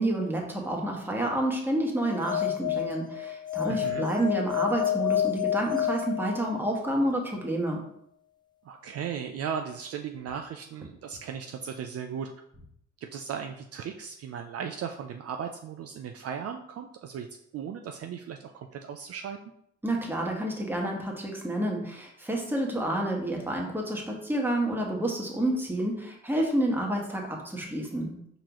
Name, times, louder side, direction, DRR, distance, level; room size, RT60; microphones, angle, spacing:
voice 1, 0.0-7.8 19.8-28.2, right 1 dB, 5° right, -1 dB, 1.2 m, -29 dB
sound 1, 2.0-6.8, left 11 dB, 15° left, 0.4 m, -29 dB
voice 2, 3.7-4.1 8.6-12.3 13.0-17.3 17.5-19.4, right 7 dB, 55° right, 5 dB, 0.4 m, -36 dB
4.6 x 3.8 x 3.0 m, 0.71 s
cardioid pair, 90°, 30 cm